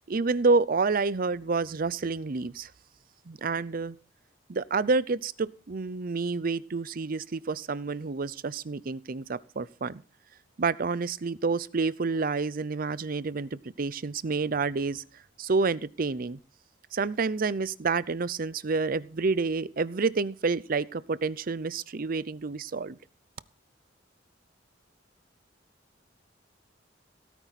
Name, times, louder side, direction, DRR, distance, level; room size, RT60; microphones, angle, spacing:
voice 1, 0.1-2.7 3.3-4.0 4.5-10.0 10.6-15.0 15.4-16.4 16.9-23.0, right 4 dB, 50° right, 18 dB, 0.6 m, -28 dB
17.0 x 9.2 x 4.2 m, 0.38 s
head